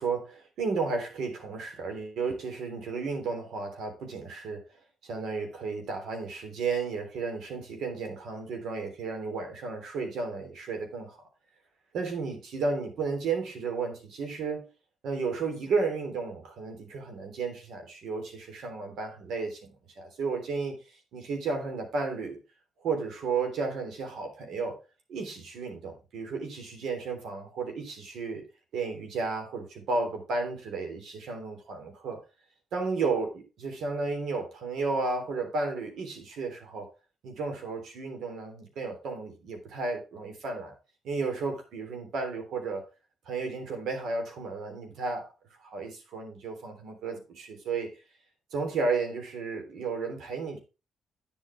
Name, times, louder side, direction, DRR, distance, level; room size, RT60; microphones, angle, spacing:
voice 1, 0.0-4.6 5.0-11.2 11.9-14.7 15.0-20.8 21.1-22.4 22.8-24.8 25.1-28.4 28.7-32.2 32.7-36.9 37.2-40.7 41.0-42.9 43.3-45.3 45.6-47.9 48.5-50.6, right 4 dB, 75° right, 3.4 m, -33 dB
9.8 x 8.1 x 3.4 m
cardioid pair, 80°, 0 cm